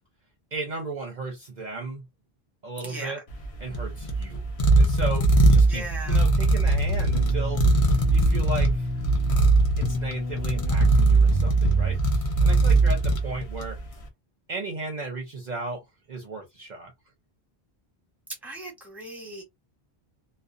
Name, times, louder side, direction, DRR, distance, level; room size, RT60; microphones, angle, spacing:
voice 1, 0.5-2.1 2.6-3.2 3.6-4.4 4.8-7.6 8.1-8.9 9.8-13.8 14.5-16.9, right 3 dB, 50° right, 0.7 m, -35 dB
voice 2, 2.8-3.1 5.6-6.2 18.4-19.4, right 2 dB, ahead, 0.9 m, -38 dB
sound 1, 3.3-13.9, right 2 dB, 40° left, 0.6 m, -21 dB
sound 2, 6.6-12.0, left 1 dB, 80° left, 0.9 m, -29 dB
2.4 x 2.2 x 2.5 m
omnidirectional pair, 1.0 m